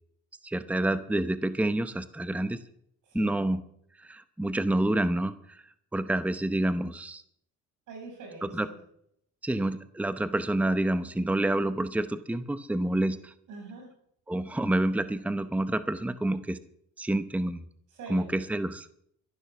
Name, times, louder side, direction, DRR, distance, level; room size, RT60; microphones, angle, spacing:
voice 1, 0.4-2.6 3.1-3.6 4.0-5.6 5.9-7.2 8.4-8.7 9.4-13.3 14.3-16.6 17.0-17.6 18.1-18.9, right 1 dB, 5° right, 12 dB, 0.8 m, -28 dB
voice 2, 3.0-3.4 7.9-8.8 13.5-13.9 17.9-18.3, right 3 dB, 85° right, 1 dB, 6.9 m, -43 dB
13.0 x 11.5 x 6.0 m, 0.68 s
cardioid pair, 90°, 30 cm